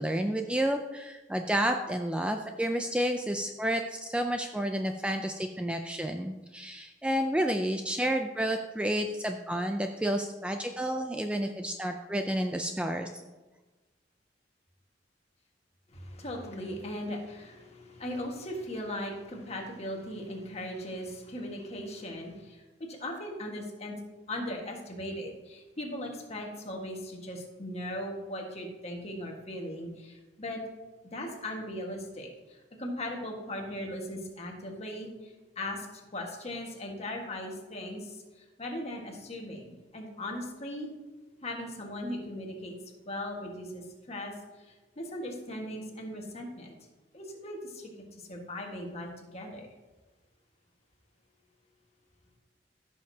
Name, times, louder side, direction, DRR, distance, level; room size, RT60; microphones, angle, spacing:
voice 1, 0.0-13.1, right 1 dB, 5° right, 4 dB, 0.4 m, -30 dB
voice 2, 15.9-22.6 22.9-24.0 24.3-30.6 31.0-40.9 41.4-42.7 43.0-46.7 47.1-49.7, left 1 dB, 35° left, 1 dB, 1.5 m, -38 dB
14.5 x 6.5 x 2.8 m, 1.2 s
head